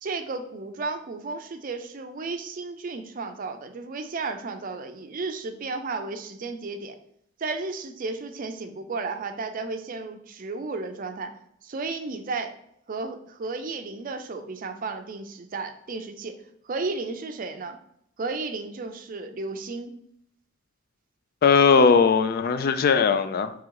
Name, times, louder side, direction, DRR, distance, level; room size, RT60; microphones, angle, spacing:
voice 1, 0.0-7.0 7.4-12.5 12.9-16.4 16.6-17.8 18.2-19.9, right 3 dB, 45° right, 7 dB, 0.5 m, -33 dB
voice 2, 21.4-23.5, left 5 dB, 50° left, 11 dB, 0.3 m, -19 dB
3.7 x 3.0 x 4.6 m, 0.71 s
head